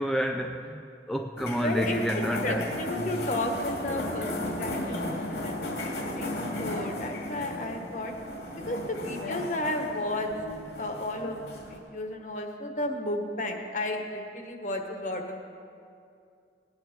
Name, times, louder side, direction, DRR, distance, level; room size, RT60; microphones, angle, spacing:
voice 1, 0.0-2.6, equal, ahead, 3 dB, 0.4 m, -29 dB
sound 1, 1.4-11.8, left 1 dB, 75° left, 2.1 m, -35 dB
voice 2, 1.5-8.1 8.7-10.3 10.8-15.4, left 1 dB, 45° left, 3 dB, 1.3 m, -33 dB
19.0 x 9.9 x 4.5 m, 2.4 s
head